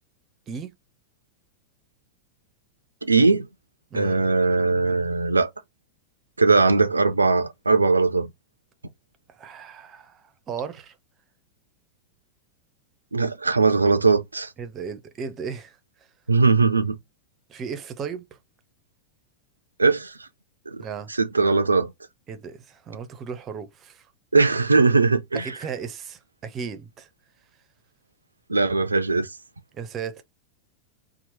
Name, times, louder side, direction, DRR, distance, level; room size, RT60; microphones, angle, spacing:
voice 1, 3.0-3.5 3.9-5.5 6.4-8.3 13.1-14.5 16.3-17.0 19.8-20.3 20.7-20.9 21.2-21.9 24.3-25.5 28.5-29.3, right 4 dB, 80° right, 0.3 m, -20 dB
voice 2, 3.9-4.2 9.3-11.0 14.6-15.8 17.5-18.4 20.8-21.1 22.3-24.1 25.3-27.1 29.7-30.2, right 6 dB, 30° right, 0.6 m, -35 dB
2.9 x 2.0 x 3.0 m
figure-of-eight pair, 90°, 0 cm